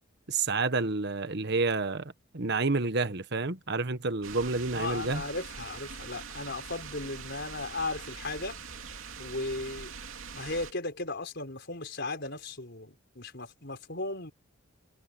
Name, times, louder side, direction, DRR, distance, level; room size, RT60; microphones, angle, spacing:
voice 1, 0.3-5.2, right 3 dB, 55° right, 1.3 m, -29 dB
sound 1, 4.2-10.7, right 5 dB, 80° right, 2.7 m, -43 dB
voice 2, 4.7-8.6 9.2-9.9 10.3-14.3, left 2 dB, 55° left, 5.3 m, -36 dB
head